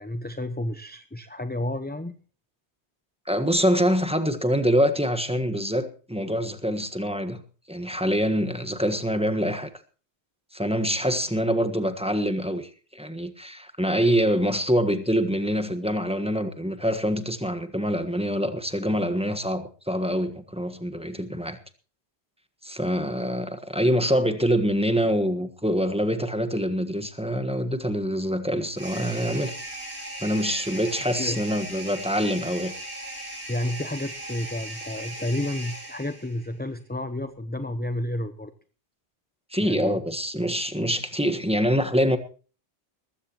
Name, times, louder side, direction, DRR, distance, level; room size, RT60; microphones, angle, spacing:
voice 1, 0.0-2.1 31.2-31.4 33.5-38.5 39.6-40.0, left 1 dB, 10° left, 0.8 m, -31 dB
voice 2, 3.3-7.4 7.7-9.7 10.5-21.6 22.6-29.5 30.2-32.7 39.5-42.2, equal, 5° right, 1.4 m, -25 dB
sound 1, 28.8-36.5, right 1 dB, 70° right, 8.3 m, -38 dB
20.0 x 15.5 x 3.0 m
omnidirectional pair, 1.1 m